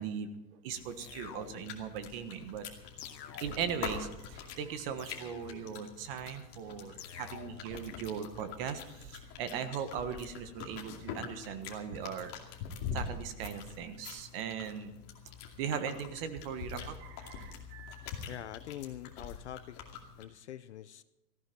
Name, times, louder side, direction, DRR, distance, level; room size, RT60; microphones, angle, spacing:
voice 1, 0.0-2.7 3.4-12.3 12.9-15.0 15.6-18.1, right 7 dB, 35° right, 9 dB, 1.4 m, -39 dB
sound 1, 0.7-20.2, left 6 dB, 30° left, 2.5 m, -45 dB
sound 2, 1.0-1.9 3.0-3.9 5.0-5.9 7.0-7.9, left 9 dB, 90° left, 2.1 m, -49 dB
voice 2, 18.3-19.8 20.2-21.0, left 12 dB, 45° left, 15 dB, 0.5 m, -44 dB
18.0 x 15.0 x 4.4 m, 0.97 s
supercardioid pair, 165°, 49 cm